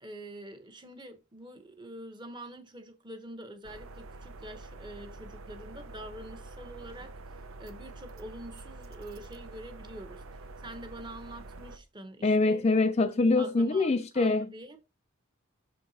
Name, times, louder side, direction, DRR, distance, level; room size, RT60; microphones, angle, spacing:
voice 1, 0.0-12.8 13.4-14.8, right 1 dB, 20° right, 1.0 m, -46 dB
sound 1, 3.6-11.8, right 2 dB, 75° right, 0.7 m, -46 dB
voice 2, 12.2-14.5, left 3 dB, 30° left, 0.3 m, -24 dB
6.4 x 4.5 x 4.1 m
head